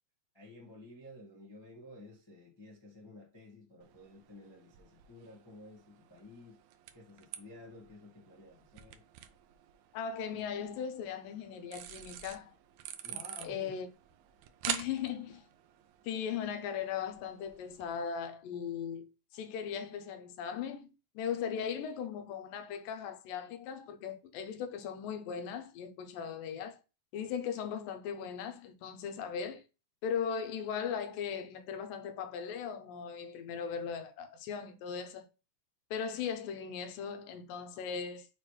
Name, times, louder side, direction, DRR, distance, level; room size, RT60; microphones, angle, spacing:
voice 1, 0.3-6.6 6.9-9.0 13.0-13.7, left 1 dB, 45° left, 0.3 m, -53 dB
sound 1, 3.8-17.9, right 11 dB, 90° right, 1.6 m, -47 dB
voice 2, 9.9-12.5 13.4-13.9 14.7-15.4 16.0-19.1 19.3-26.8 27.1-29.6 30.0-35.3 35.9-38.3, left 7 dB, 85° left, 2.6 m, -38 dB
6.8 x 4.6 x 3.2 m
omnidirectional pair, 3.9 m